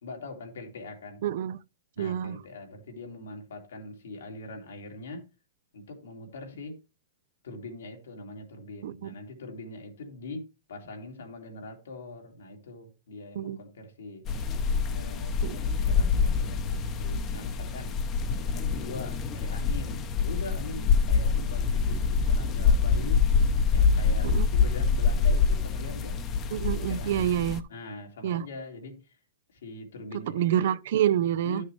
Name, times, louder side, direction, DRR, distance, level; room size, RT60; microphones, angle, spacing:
voice 1, 0.0-1.2 2.0-5.2 5.7-6.8 7.4-14.3 14.9-18.0 18.4-23.3 23.7-26.2 26.7-27.4 27.7-29.2 29.5-30.7 31.4-31.6, left 2 dB, 90° left, 2.8 m, -42 dB
voice 2, 1.2-1.6 2.0-2.4 8.8-8.9 13.4-13.6 15.4-15.5 24.2-24.5 26.5-27.6 28.2-28.5 30.3-31.6, right 10 dB, 60° right, 0.5 m, -27 dB
sound 1, 14.3-27.6, left 5 dB, 25° left, 0.8 m, -25 dB
11.5 x 6.4 x 3.2 m
hypercardioid pair, 155°, 0 cm